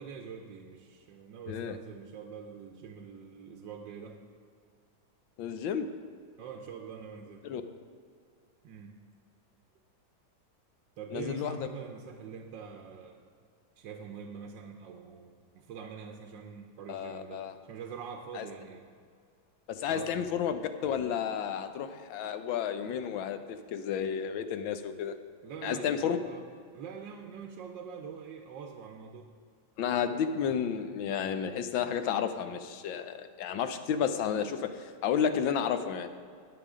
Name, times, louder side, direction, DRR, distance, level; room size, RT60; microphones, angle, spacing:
voice 1, 0.0-4.2 6.4-7.4 8.6-8.9 11.0-13.2 13.8-18.8 19.9-20.1 25.4-26.4 26.7-29.3, right 6 dB, 70° right, 2 dB, 1.4 m, -44 dB
voice 2, 5.4-5.9 7.4-7.6 11.1-11.7 16.9-17.5 18.3-18.5 19.7-25.2 25.6-26.2 29.8-36.1, left 8 dB, 80° left, 9 dB, 1.5 m, -32 dB
20.0 x 6.9 x 3.7 m, 2.2 s
omnidirectional pair, 2.1 m